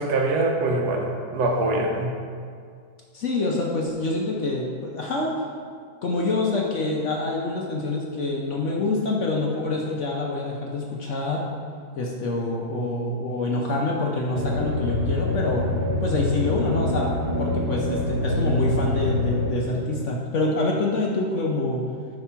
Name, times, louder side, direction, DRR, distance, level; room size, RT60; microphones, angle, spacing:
voice 1, 0.0-2.1, right 2 dB, 75° right, 1 dB, 1.3 m, -23 dB
voice 2, 3.1-5.4 6.0-11.4 12.0-15.7 16.0-17.1 17.4-21.8, left 2 dB, 60° left, -1 dB, 0.8 m, -26 dB
sound 1, 14.3-19.5, left 2 dB, 30° right, 1.0 m, -25 dB
8.0 x 3.0 x 5.6 m, 2.1 s
omnidirectional pair, 1.7 m